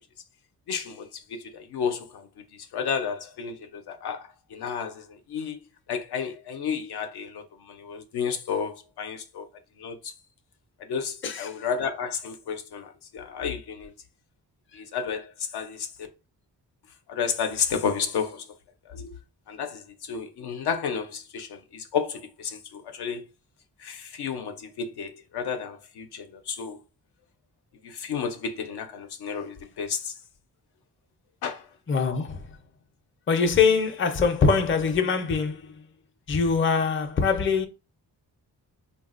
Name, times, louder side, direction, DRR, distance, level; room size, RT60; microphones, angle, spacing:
voice 1, 0.7-5.6 5.9-9.5 9.8-10.1 10.8-13.9 14.7-15.9 17.1-18.5 18.9-19.2 19.5-23.3 23.8-26.8 27.8-30.1 31.4-31.7, left 6 dB, 75° left, 0.6 m, -32 dB
voice 2, 11.2-11.6 31.9-32.6 33.3-35.7 36.3-37.7, left 5 dB, 30° left, 0.5 m, -23 dB
3.2 x 2.3 x 2.4 m
cardioid pair, 85°, 39 cm